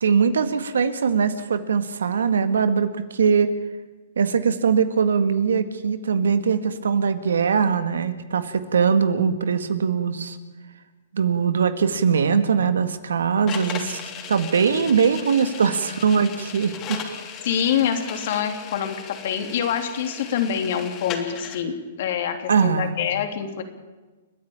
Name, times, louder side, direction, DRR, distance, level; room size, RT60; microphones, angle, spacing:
voice 1, 0.0-3.5 4.2-10.4 11.1-14.0 14.3-17.0 22.5-23.0, right 6 dB, 85° right, 11 dB, 1.9 m, -21 dB
sound 1, 13.5-21.6, left 7 dB, 30° left, 3.2 m, -37 dB
voice 2, 17.4-23.6, left 8 dB, 60° left, 6 dB, 3.1 m, -25 dB
30.0 x 10.5 x 8.9 m, 1.2 s
hypercardioid pair, 135°, 0 cm